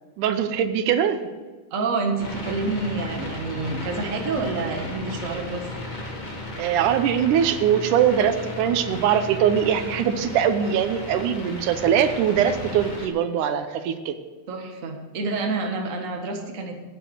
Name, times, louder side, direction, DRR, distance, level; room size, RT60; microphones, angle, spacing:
voice 1, 0.2-1.2 6.6-14.2, right 9 dB, 90° right, 9 dB, 2.4 m, -22 dB
voice 2, 1.7-5.7 14.5-16.9, right 3 dB, 35° right, 2 dB, 1.4 m, -28 dB
sound 1, 2.2-13.1, left 1 dB, 40° left, 0.6 m, -35 dB
9.8 x 9.2 x 8.1 m, 1.3 s
omnidirectional pair, 3.5 m